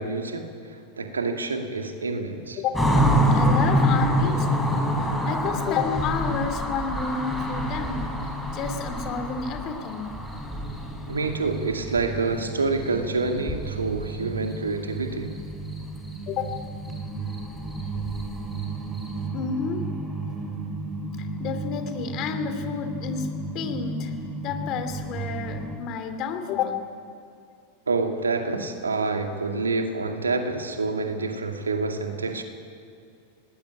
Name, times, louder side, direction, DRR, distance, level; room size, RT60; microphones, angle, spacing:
voice 1, 0.0-2.6 11.1-15.4 27.9-32.4, right 3 dB, 75° right, 5 dB, 2.3 m, -27 dB
sound 1, 2.7-12.9 13.2-14.1 14.4-14.6 14.9-15.8 16.0-16.2 16.4-19.2, equal, ahead, 4.9 m, -26 dB
voice 2, 3.3-10.1 16.3-16.6 19.3-19.9 21.4-24.1 24.4-26.9, left 6 dB, 35° left, 7 dB, 2.9 m, -30 dB
sound 2, 9.4-25.8, right 3 dB, 20° right, 2.6 m, -35 dB
20.5 x 18.5 x 9.8 m, 2.6 s
figure-of-eight pair, 90°, 0 cm